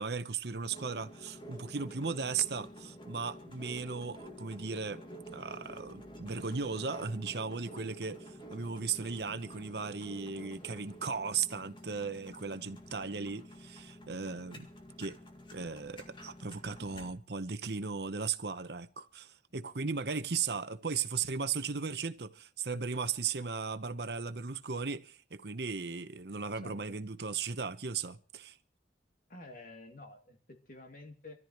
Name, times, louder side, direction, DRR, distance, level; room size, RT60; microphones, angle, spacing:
voice 1, 0.0-5.0 5.3-14.7 15.0-15.2 15.5-28.6, right 5 dB, 65° right, 0.9 m, -36 dB
sound 1, 0.7-17.1, equal, 30° left, 2.1 m, -50 dB
voice 2, 26.6-27.0 29.3-31.4, left 2 dB, 50° left, 2.5 m, -50 dB
25.5 x 14.0 x 3.1 m
head